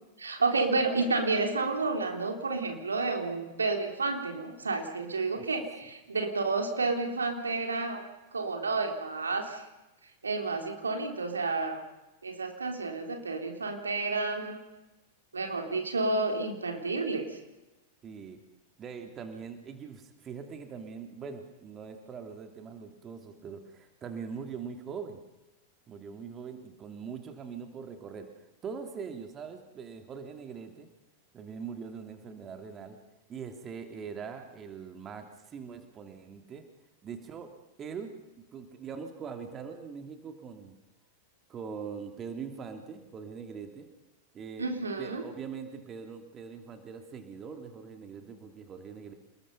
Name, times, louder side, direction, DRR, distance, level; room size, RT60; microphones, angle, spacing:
voice 1, 0.2-8.0 8.3-9.6 10.2-11.8 12.2-14.6 15.3-17.4 44.6-45.2, right 3 dB, 75° right, 4 dB, 3.8 m, -30 dB
voice 2, 18.0-18.4 18.8-25.2 25.9-30.9 31.3-33.0 33.3-36.6 37.0-37.5 37.8-38.1 38.5-40.7 41.5-43.9 44.3-44.7 45.0-49.1, right 6 dB, 25° right, 6 dB, 2.9 m, -42 dB
29.0 x 21.0 x 5.5 m, 1.0 s
figure-of-eight pair, 95°, 0 cm